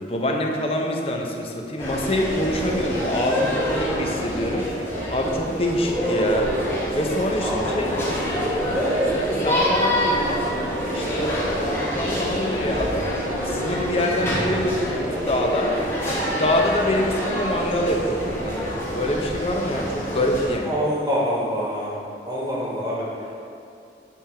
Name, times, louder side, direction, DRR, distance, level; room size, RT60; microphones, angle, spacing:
voice 1, 0.0-4.7 5.1-6.5 6.9-8.0 9.0-10.4 10.9-11.5 11.7-13.1 13.4-15.8 16.2-18.6 18.9-20.8, left 1 dB, 35° left, 1 dB, 0.6 m, -25 dB
sound 1, 1.8-20.6, equal, 15° left, 1.4 m, -26 dB
voice 2, 7.4-7.7 20.6-22.0 22.2-23.3, equal, 20° right, -6 dB, 1.3 m, -26 dB
Wind instrument woodwind instrument, 11.3-15.7, left 1 dB, 60° right, 0.7 m, -41 dB
9.2 x 3.6 x 4.3 m, 2.5 s
head